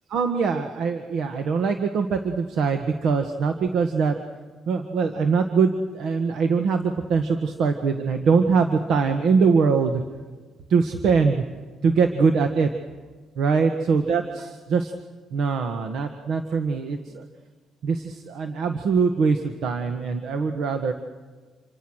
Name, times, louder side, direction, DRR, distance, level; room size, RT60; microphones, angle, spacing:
voice 1, 0.1-4.2 4.7-10.0 10.7-11.4 11.8-12.7 13.3-14.9 15.3-17.2 17.8-20.9, right 5 dB, 75° right, 6 dB, 1.6 m, -22 dB
28.0 x 25.0 x 6.4 m, 1.4 s
cardioid pair, 90°, 0 cm